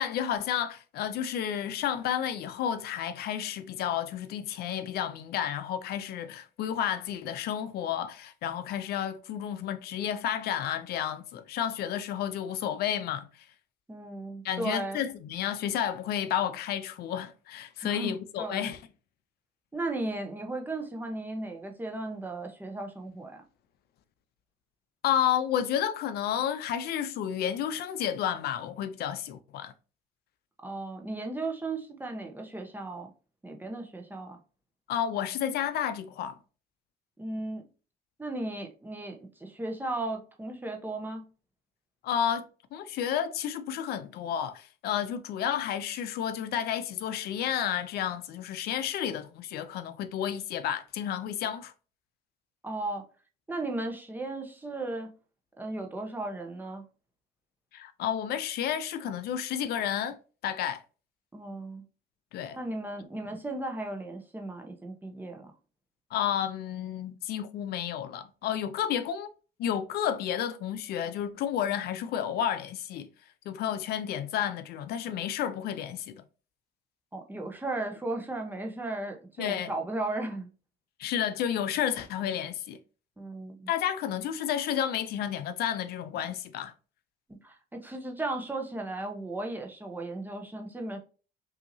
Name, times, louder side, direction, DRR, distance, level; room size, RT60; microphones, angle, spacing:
voice 1, 0.0-13.5 14.4-18.8 25.0-29.7 34.9-36.4 42.0-42.4 42.7-51.7 57.7-60.2 60.4-60.8 62.3-62.6 66.1-69.3 69.6-73.1 73.5-76.2 79.4-79.7 81.0-82.8 83.7-86.7, left 9 dB, 70° left, 0.5 m, -31 dB
voice 2, 13.9-15.0 17.8-18.1 18.4-18.7 19.7-23.4 30.6-33.1 33.4-34.4 37.2-37.6 38.2-41.3 52.6-53.1 53.5-55.1 55.6-56.8 61.3-61.8 62.5-65.5 77.1-80.5 83.2-83.7 87.4-91.0, right 2 dB, 10° right, 0.9 m, -35 dB
5.6 x 2.7 x 2.7 m
cardioid pair, 110°, 17 cm